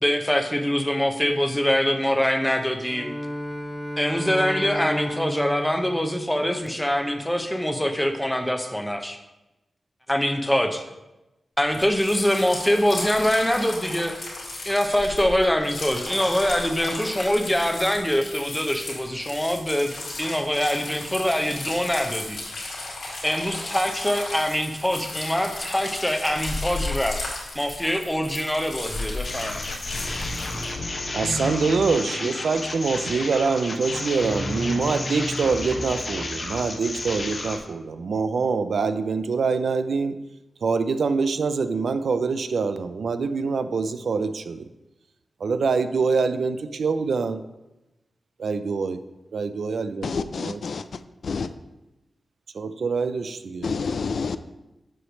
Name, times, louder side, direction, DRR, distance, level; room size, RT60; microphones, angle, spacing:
voice 1, 0.0-3.1 4.0-9.2 10.1-10.8 11.6-14.1 14.7-22.4 23.2-27.3 27.5-29.6, equal, 5° left, 5 dB, 0.7 m, -24 dB
Bowed string instrument, 2.7-6.9, equal, 10° right, 1.7 m, -33 dB
sound 1, 11.7-30.7, left 2 dB, 90° left, 2.4 m, -35 dB
sound 2, 29.2-37.6, left 2 dB, 45° left, 1.0 m, -31 dB
voice 2, 31.1-40.2 40.6-44.7 45.4-47.4 48.4-49.0 49.3-50.6 52.5-53.7, right 4 dB, 75° right, 11 dB, 0.4 m, -25 dB
voice 3, 50.0-50.8 51.2-51.5 53.6-54.4, left 5 dB, 70° left, 12 dB, 0.3 m, -28 dB
7.8 x 3.2 x 6.2 m, 0.99 s
wide cardioid pair, 105°, 0 cm